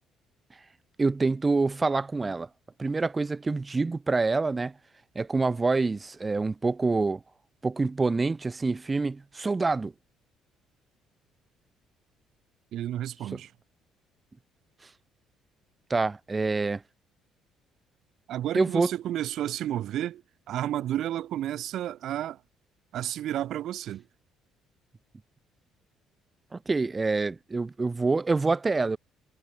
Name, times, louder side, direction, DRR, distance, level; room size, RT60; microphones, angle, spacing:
voice 1, 1.0-2.5 2.8-4.7 5.1-7.2 7.6-9.9 13.3-13.4 15.9-16.8 18.5-18.9 26.5-29.0, right 3 dB, 25° right, 1.6 m, -26 dB
voice 2, 12.7-13.5 18.3-20.2 20.5-22.4 22.9-24.0, right 12 dB, 60° right, 2.6 m, -31 dB
figure-of-eight pair, 50°, 0 cm